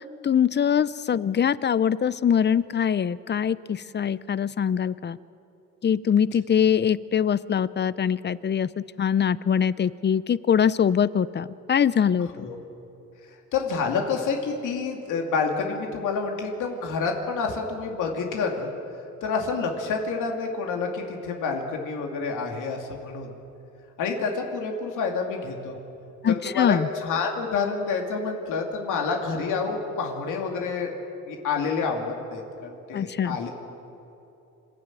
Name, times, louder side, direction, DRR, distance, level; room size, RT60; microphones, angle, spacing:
voice 1, 0.2-5.2 5.8-12.5 26.2-26.9 32.9-33.4, left 8 dB, 35° left, 18 dB, 0.6 m, -23 dB
voice 2, 13.5-18.7 19.2-23.3 24.0-25.8 26.3-30.9 31.3-33.5, left 4 dB, 85° left, 1 dB, 2.6 m, -28 dB
27.0 x 12.0 x 9.0 m, 2.8 s
cardioid pair, 90°, 30 cm